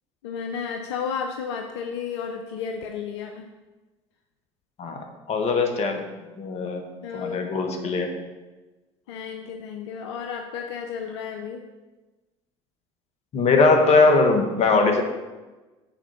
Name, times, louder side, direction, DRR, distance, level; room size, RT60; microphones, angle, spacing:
voice 1, 0.2-3.5 7.0-7.4 9.1-11.6, left 6 dB, 80° left, 4 dB, 0.5 m, -32 dB
voice 2, 4.8-6.0 6.3-6.9 7.1-8.1 13.3-15.0, left 3 dB, 50° left, 4 dB, 1.4 m, -20 dB
7.3 x 4.4 x 5.8 m, 1.2 s
hypercardioid pair, 70°, 14 cm